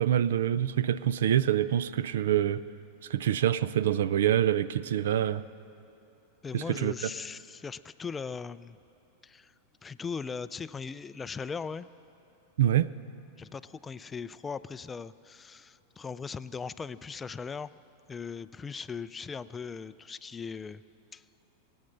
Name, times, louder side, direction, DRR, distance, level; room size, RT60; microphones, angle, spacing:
voice 1, 0.0-2.6 3.1-5.4 6.5-6.9 12.6-12.9, right 11 dB, 80° right, 0.4 m, -26 dB
voice 2, 6.4-8.8 9.2-9.5 9.8-11.9 13.4-17.7 18.1-20.8 21.1-21.2, left 5 dB, 15° left, 0.3 m, -39 dB
22.0 x 8.7 x 6.6 m
supercardioid pair, 130°, 0 cm